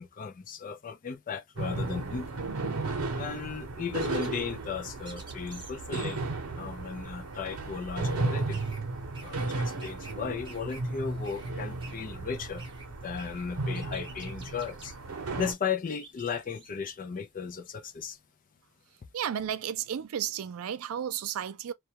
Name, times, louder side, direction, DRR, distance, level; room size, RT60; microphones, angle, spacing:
voice 1, 0.0-2.4 3.1-6.2 6.6-8.6 9.2-12.6 13.0-18.2, left 6 dB, 40° left, 0.4 m, -36 dB
sound 1, 1.6-15.5, right 3 dB, 85° right, 0.7 m, -34 dB
sound 2, 3.9-10.2 10.4-17.7, right 3 dB, 20° right, 0.8 m, -51 dB
voice 2, 19.1-21.7, right 9 dB, 70° right, 0.4 m, -33 dB
2.3 x 2.2 x 2.8 m
head